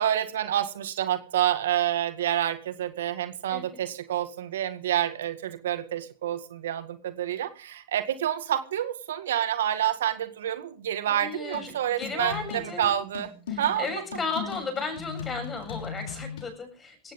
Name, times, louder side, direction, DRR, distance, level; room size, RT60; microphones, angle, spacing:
voice 1, 0.0-13.3 13.6-13.9, right 11 dB, 75° right, 10 dB, 1.8 m, -28 dB
voice 2, 11.1-12.9 13.5-17.1, left 4 dB, 20° left, 5 dB, 7.7 m, -35 dB
sound 1, 11.5-16.5, left 6 dB, 80° left, 5.6 m, -38 dB
18.5 x 15.5 x 3.7 m, 0.38 s
hypercardioid pair, 110°, 0 cm